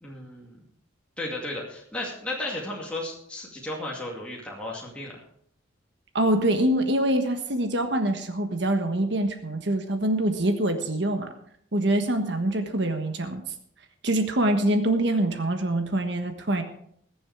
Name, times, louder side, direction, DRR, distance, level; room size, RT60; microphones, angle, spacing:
voice 1, 0.0-0.6 1.2-5.2, left 1 dB, 5° left, -4 dB, 2.4 m, -34 dB
voice 2, 6.1-11.3 11.7-13.4 14.0-16.6, right 1 dB, 60° right, 6 dB, 1.4 m, -24 dB
21.0 x 7.1 x 4.8 m, 0.67 s
head